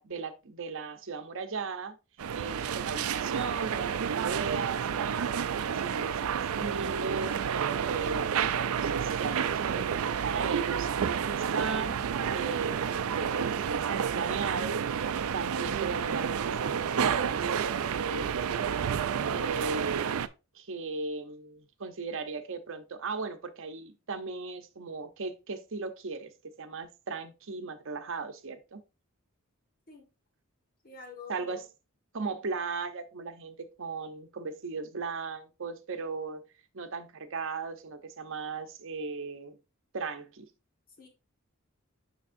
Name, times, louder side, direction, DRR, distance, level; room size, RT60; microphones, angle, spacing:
voice 1, 0.0-2.0 2.3-12.0 12.3-17.4 17.9-18.6 19.3-20.2 20.5-28.8 31.3-31.6 32.1-36.5 36.7-39.6 39.9-40.5, right 4 dB, 65° right, 0.8 m, -37 dB
sound 1, 2.2-20.3, right 7 dB, 85° right, 0.4 m, -30 dB
voice 2, 30.8-31.7 41.0-41.1, left 4 dB, 45° left, 1.4 m, -47 dB
7.0 x 5.9 x 2.6 m
head